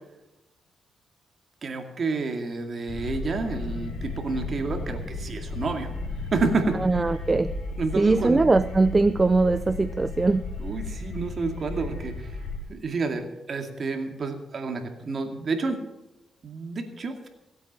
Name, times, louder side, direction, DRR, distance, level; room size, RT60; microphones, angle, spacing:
voice 1, 1.6-5.9 6.3-6.8 7.8-8.4 10.6-12.4 12.7-15.8 16.4-17.3, right 3 dB, 45° right, 5 dB, 2.2 m, -29 dB
sound 1, 2.9-12.6, left 3 dB, 80° left, 4.2 m, -34 dB
voice 2, 6.8-7.5 8.0-10.5, right 3 dB, 25° right, 13 dB, 0.4 m, -21 dB
16.5 x 8.5 x 7.4 m, 0.95 s
cardioid pair, 100°, 0 cm